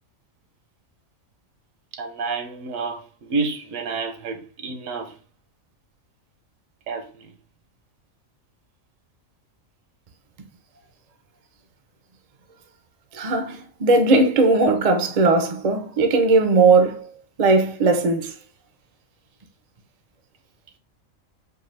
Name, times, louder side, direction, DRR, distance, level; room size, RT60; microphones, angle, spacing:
voice 1, 1.9-5.1 6.9-7.3, right 4 dB, 75° right, 1.1 m, -29 dB
voice 2, 13.1-17.0 17.4-18.3, right 3 dB, 50° right, 0.5 m, -18 dB
4.5 x 2.3 x 3.1 m
omnidirectional pair, 1.4 m